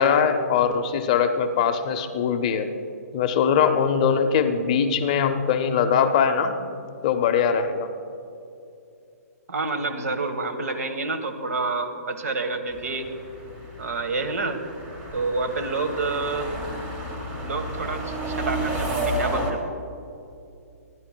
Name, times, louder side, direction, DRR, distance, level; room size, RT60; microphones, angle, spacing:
voice 1, 0.0-2.7 3.1-6.6 7.0-7.9, left 7 dB, 25° left, 7 dB, 0.5 m, -21 dB
voice 2, 9.5-13.1 13.8-14.6 15.1-16.5 17.4-19.6, right 3 dB, 70° right, 9 dB, 1.3 m, -28 dB
sound 1, 12.7-19.5, right 1 dB, 15° right, 1.1 m, -31 dB
28.0 x 11.0 x 2.2 m, 2.6 s
hypercardioid pair, 170°, 9 cm